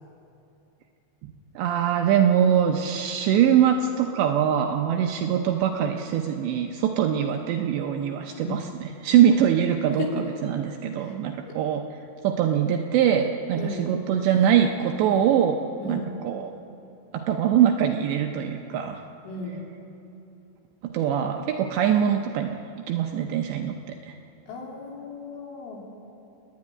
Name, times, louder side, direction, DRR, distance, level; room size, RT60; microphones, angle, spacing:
voice 1, 1.2-11.9 12.2-15.6 15.9-16.5 17.1-19.0 20.8-22.6 22.9-24.2, right 9 dB, 80° right, 4 dB, 2.7 m, -23 dB
voice 2, 13.6-13.9 15.8-16.0 19.3-19.6 24.5-25.8, left 3 dB, 75° left, -1 dB, 5.4 m, -35 dB
27.0 x 11.0 x 9.7 m, 2.8 s
omnidirectional pair, 5.8 m